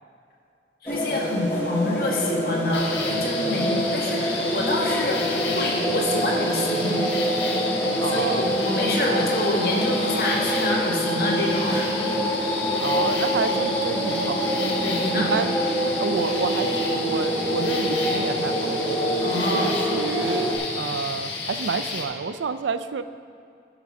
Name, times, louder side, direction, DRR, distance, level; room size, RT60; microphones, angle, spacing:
voice 1, 0.8-7.0 8.1-11.9 14.8-15.3 19.2-19.8, left 1 dB, 55° left, -3 dB, 1.7 m, -27 dB
sound 1, 0.9-20.6, equal, 15° left, 1.4 m, -26 dB
sound 2, 2.7-22.0, left 3 dB, 85° left, 1.5 m, -32 dB
voice 2, 3.5-3.8 8.0-8.5 12.8-14.5 15.1-15.5 15.9-18.7 19.3-23.0, right 5 dB, 90° right, 11 dB, 0.4 m, -29 dB
11.0 x 6.0 x 5.3 m, 2.5 s
head